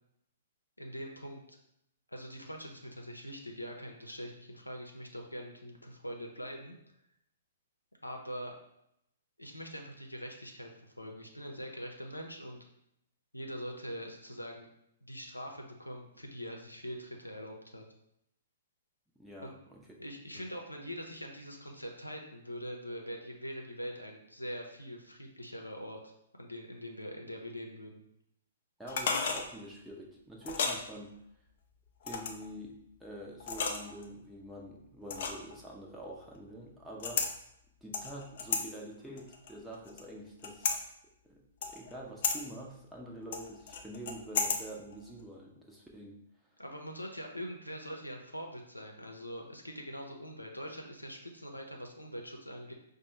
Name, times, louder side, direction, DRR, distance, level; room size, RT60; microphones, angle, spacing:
voice 1, 0.8-1.6 2.1-6.7 8.0-8.5 9.4-12.6 13.3-14.7 15.0-17.8 19.4-19.5 20.0-26.0 26.3-28.0 46.6-52.7, equal, 90° left, 2 dB, 0.6 m, -43 dB
voice 2, 19.2-19.8 20.3-20.5 28.8-31.1 32.0-37.3 37.8-40.7 41.2-46.2, right 1 dB, 5° right, -3 dB, 0.6 m, -46 dB
sound 1, 28.9-29.5 30.4-30.8 32.0-32.5 33.4-34.0 35.1-35.5 37.0-37.3 37.9-38.6 39.2-40.0 40.4-40.8 41.6-41.9 42.2-42.4 43.3-44.6 44.9-45.0, left 5 dB, 50° left, 0.5 m, -33 dB
5.1 x 2.2 x 3.0 m, 0.79 s
figure-of-eight pair, 115°, 0 cm